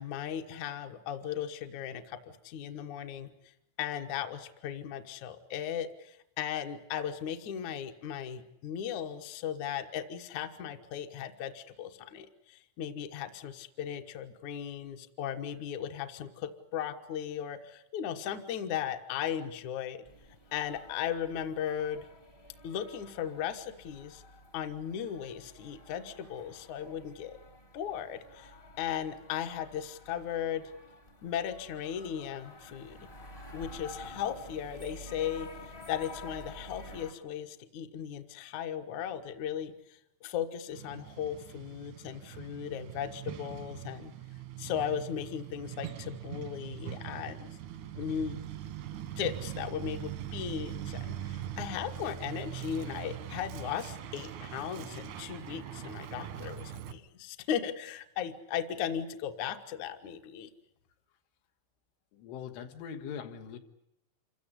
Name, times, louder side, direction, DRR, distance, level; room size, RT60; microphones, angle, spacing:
voice 1, 0.0-3.3 3.8-20.1 20.5-22.1 22.6-24.2 24.5-27.4 27.7-30.7 31.2-33.1 33.5-35.5 35.9-39.7 40.2-44.1 44.6-47.6 48.0-48.5 49.2-60.5, left 9 dB, 70° left, 7 dB, 1.8 m, -37 dB
sound 1, 20.0-37.1, left 1 dB, 40° left, 0.7 m, -50 dB
Truck, 40.7-56.9, right 11 dB, 80° right, 1.7 m, -42 dB
voice 2, 62.1-63.6, left 7 dB, 90° left, 6 dB, 4.1 m, -41 dB
27.0 x 15.5 x 9.8 m, 0.83 s
omnidirectional pair, 5.4 m